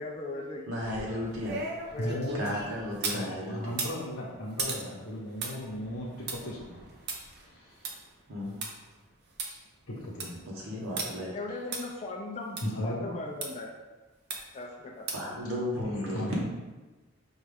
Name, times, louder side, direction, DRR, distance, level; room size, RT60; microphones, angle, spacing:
voice 1, 0.0-0.6 1.9-2.2 11.3-13.7 14.5-15.1, left 2 dB, 30° left, -2 dB, 0.3 m, -38 dB
voice 2, 0.7-1.8 2.3-3.7 8.3-8.6 10.5-11.3 15.1-16.5, left 1 dB, 75° right, -5 dB, 1.0 m, -34 dB
sound 1, 0.8-3.3 3.7-8.7 9.1-9.2 9.4-9.5 9.9-10.4 11.0-11.1 11.7-11.8 12.6-12.7 13.4-13.5 14.3-14.6 15.1-15.4 15.8-15.9, right 3 dB, 50° right, 0.6 m, -37 dB
voice 3, 2.0-2.7 3.1-6.8 7.4-7.9 9.9-10.4 12.6-13.1 15.8-16.5, equal, 75° left, -8 dB, 0.9 m, -36 dB
5.4 x 2.4 x 3.4 m, 1.2 s
head